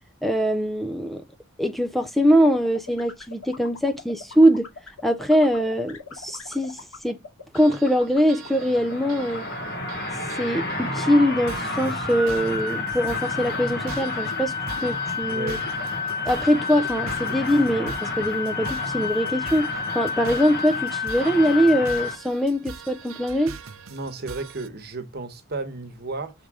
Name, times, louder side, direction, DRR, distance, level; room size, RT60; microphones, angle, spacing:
voice 1, 0.2-1.2 1.6-4.7 5.0-7.2 7.5-9.5 10.4-14.5 14.8-15.6 16.2-23.6, equal, ahead, 0.4 m, -22 dB
sound 1, 2.5-19.6, left 3 dB, 75° left, 2.2 m, -41 dB
sound 2, 7.5-24.7, right 5 dB, 70° right, 0.7 m, -42 dB
sound 3, 8.5-22.2, left 4 dB, 50° left, 1.4 m, -29 dB
voice 2, 15.3-15.6 23.9-26.3, right 3 dB, 50° right, 1.1 m, -33 dB
6.6 x 3.7 x 4.7 m
head